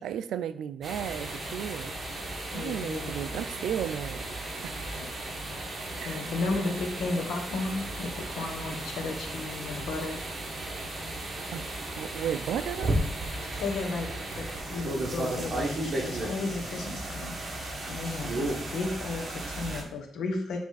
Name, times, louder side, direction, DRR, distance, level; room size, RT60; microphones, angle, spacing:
voice 1, 0.0-1.9 2.5-4.2 4.6-4.8 6.0-6.3 10.8-10.9 11.5-11.6 12.0-13.0, right 9 dB, 90° right, 13 dB, 0.4 m, -34 dB
sound 1, 0.8-19.8, right 1 dB, 35° right, 1.5 m, -35 dB
voice 2, 2.5-3.4 5.0-5.1 6.0-10.2 13.4-20.6, left 3 dB, 85° left, 3 dB, 1.3 m, -34 dB
8.5 x 3.4 x 4.1 m, 0.67 s
cardioid pair, 145°, 0 cm